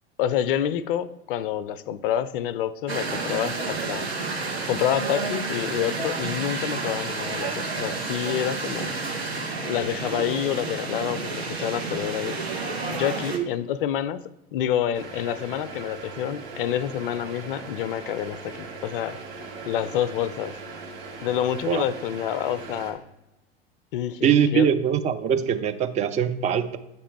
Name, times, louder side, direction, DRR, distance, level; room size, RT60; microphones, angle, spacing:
voice 1, 0.2-4.1 4.7-8.9 9.7-12.4 12.9-14.2 14.5-19.2 19.7-20.5 21.2-23.0 23.9-24.7, left 10 dB, 60° left, 15 dB, 0.4 m, -28 dB
sound 1, 2.9-13.4, right 3 dB, 85° right, 0.9 m, -30 dB
sound 2, 14.9-22.9, right 4 dB, 50° right, 1.3 m, -39 dB
voice 2, 24.2-26.8, right 8 dB, 25° right, 9 dB, 0.4 m, -22 dB
8.1 x 3.0 x 4.4 m, 0.94 s
figure-of-eight pair, 85°, 31 cm